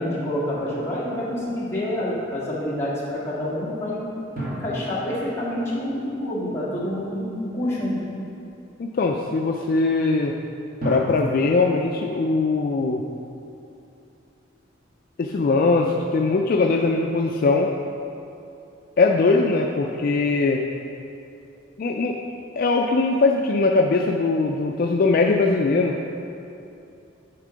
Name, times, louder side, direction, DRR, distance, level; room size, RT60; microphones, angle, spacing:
voice 1, 0.0-4.0 4.5-8.1, left 1 dB, 15° left, -8 dB, 1.6 m, -27 dB
sound 1, 4.4-7.2 10.8-14.2, equal, 45° right, 1.7 m, -36 dB
voice 2, 8.8-10.4 10.8-13.0 15.2-17.7 19.0-20.6 21.8-22.2 22.6-26.0, left 3 dB, 45° left, 1 dB, 0.3 m, -21 dB
9.9 x 3.7 x 5.1 m, 2.6 s
head